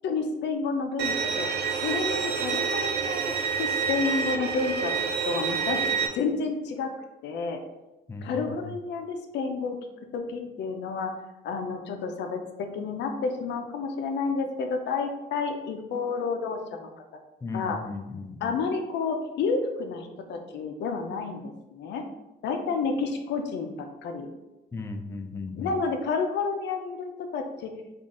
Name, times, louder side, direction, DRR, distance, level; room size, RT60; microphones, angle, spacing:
voice 1, 0.0-1.5 1.8-3.2 3.6-4.9 5.3-5.8 6.1-6.9 7.2-7.6 8.2-9.8 10.1-11.1 11.4-16.9 17.5-17.8 18.4-22.0 22.4-24.3 25.6-27.7, left 4 dB, 90° left, 4 dB, 0.5 m, -30 dB
Bowed string instrument, 1.0-6.1, right 6 dB, 70° right, 0.5 m, -28 dB
voice 2, 8.1-8.5 17.4-18.5 24.7-25.7, left 3 dB, 15° left, 6 dB, 0.3 m, -36 dB
3.7 x 2.4 x 3.6 m, 1.0 s
cardioid pair, 105°, 18 cm